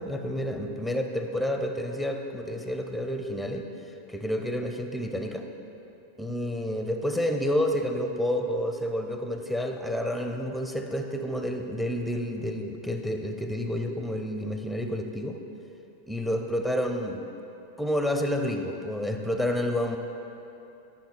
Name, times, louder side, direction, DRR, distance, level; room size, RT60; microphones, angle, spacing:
voice 1, 0.0-3.7 4.1-5.5 6.2-15.4 16.1-17.2 17.8-20.0, equal, ahead, 5 dB, 0.6 m, -29 dB
11.5 x 5.6 x 4.4 m, 2.9 s
figure-of-eight pair, 90°, 0 cm